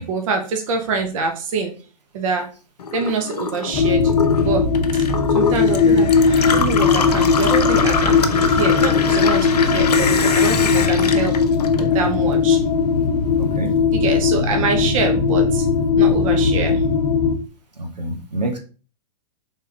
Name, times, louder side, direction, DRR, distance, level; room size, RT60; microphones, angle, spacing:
voice 1, 0.0-1.7 2.1-2.5 2.9-4.1 4.4-5.0 5.3-11.4 11.8-12.6 13.9-15.7 16.0-16.8, right 4 dB, 55° right, 3 dB, 0.9 m, -25 dB
Gurgling / Water tap faucet / Sink (filling or washing), 2.8-12.3 12.6-13.5, left 6 dB, 70° left, 0.6 m, -25 dB
sound 1, 3.7-17.3, left 5 dB, 45° left, 0.9 m, -18 dB
voice 2, 13.4-13.7 17.8-18.6, right 1 dB, 85° right, 2 dB, 1.1 m, -26 dB
3.6 x 3.6 x 2.7 m, 0.36 s
figure-of-eight pair, 105°, 21 cm